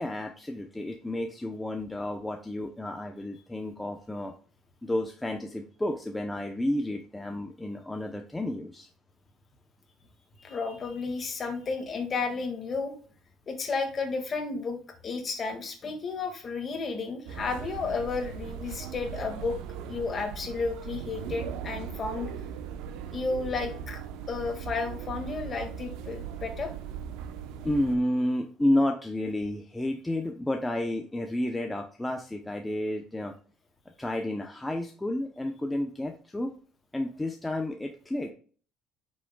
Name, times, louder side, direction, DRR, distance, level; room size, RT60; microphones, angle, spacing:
voice 1, 0.0-4.3 4.8-8.9 27.6-33.3 34.0-36.5 36.9-38.3, left 1 dB, 5° left, 3 dB, 0.7 m, -31 dB
voice 2, 10.4-12.9 13.5-14.8 15.0-19.6 19.9-22.3 23.1-24.0 24.3-26.7, left 4 dB, 30° left, 4 dB, 1.8 m, -32 dB
sound 1, 17.3-28.0, right 8 dB, 90° right, 0.8 m, -39 dB
7.9 x 6.3 x 2.3 m, 0.41 s
cardioid pair, 145°, 0 cm